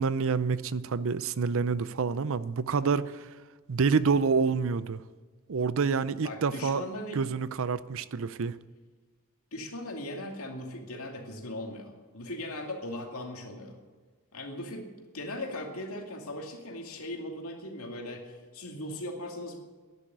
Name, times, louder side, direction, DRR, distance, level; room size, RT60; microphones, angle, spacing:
voice 1, 0.0-3.3 3.7-5.0 5.5-6.8 7.1-8.6, right 5 dB, 65° right, 0.5 m, -27 dB
voice 2, 6.2-7.2 9.5-13.8 14.3-14.9 15.1-19.6, left 1 dB, 70° left, 2.6 m, -38 dB
11.5 x 11.5 x 9.3 m
head